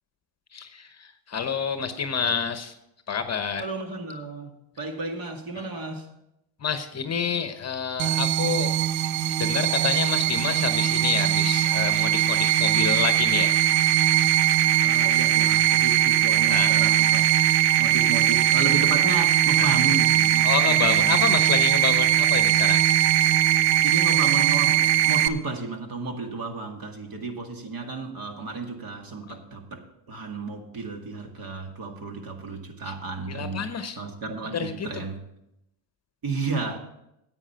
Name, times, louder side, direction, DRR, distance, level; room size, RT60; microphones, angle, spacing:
voice 1, 0.5-2.7 3.1-3.6 5.5-5.7 6.6-8.8 9.2-13.6 16.5-16.7 19.6-19.8 20.4-22.8 29.3-29.4 32.8-32.9 33.3-34.0 34.5-35.1, left 6 dB, 30° left, 9 dB, 1.0 m, -28 dB
voice 2, 3.6-6.1 14.8-17.3 17.8-21.2 23.8-33.7 34.0-35.2 36.2-36.8, right 3 dB, 45° right, 4 dB, 2.1 m, -33 dB
sound 1, 8.0-25.3, right 12 dB, 85° right, 0.8 m, -20 dB
9.9 x 8.7 x 5.7 m, 0.84 s
supercardioid pair, 95°, 49 cm